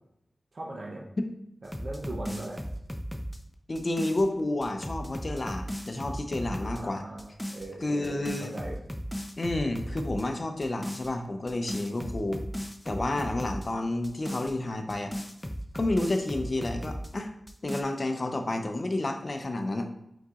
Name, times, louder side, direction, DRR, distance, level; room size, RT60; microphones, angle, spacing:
voice 1, 0.5-1.1 1.6-2.6 6.7-8.8, right 2 dB, 60° right, -2 dB, 0.6 m, -39 dB
sound 1, 1.6-4.2 4.6-6.8 7.2-7.7 8.0-10.2 10.6-11.1 11.5-13.7 14.0-17.1 17.5-17.8, equal, 10° left, 0.5 m, -36 dB
voice 2, 3.7-7.0 7.8-8.5 9.4-12.4 12.8-15.1 15.7-17.3 17.6-19.9, left 2 dB, 50° left, 5 dB, 0.6 m, -30 dB
4.5 x 3.9 x 2.4 m, 0.79 s
cardioid pair, 45°, 0 cm